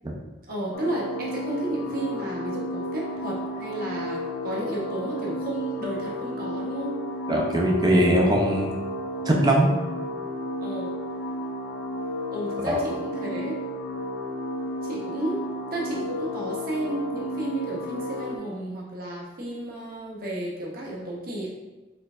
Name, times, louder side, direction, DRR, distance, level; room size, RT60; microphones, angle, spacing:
voice 1, 0.5-7.0 10.6-11.0 12.3-13.5 14.8-15.4 15.7-21.5, right 1 dB, 50° right, -4 dB, 1.0 m, -32 dB
sound 1, 0.7-18.4, left 1 dB, 65° left, 0.5 m, -32 dB
voice 2, 7.3-8.7 9.3-9.7 12.7-12.8, right 1 dB, 20° right, -1 dB, 0.5 m, -21 dB
4.4 x 3.2 x 2.4 m, 1.2 s
head